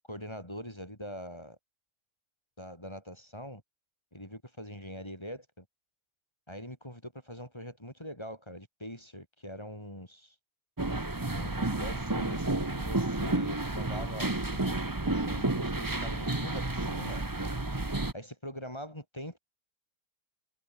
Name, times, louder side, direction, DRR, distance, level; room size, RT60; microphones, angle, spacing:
voice 1, 0.1-1.6 2.6-3.6 4.1-5.6 6.5-10.3 11.3-17.2 18.1-19.4, equal, 15° left, 4.9 m, -43 dB
sound 1, 10.8-18.1, right 2 dB, 15° right, 1.2 m, -31 dB
omnidirectional pair, 1.7 m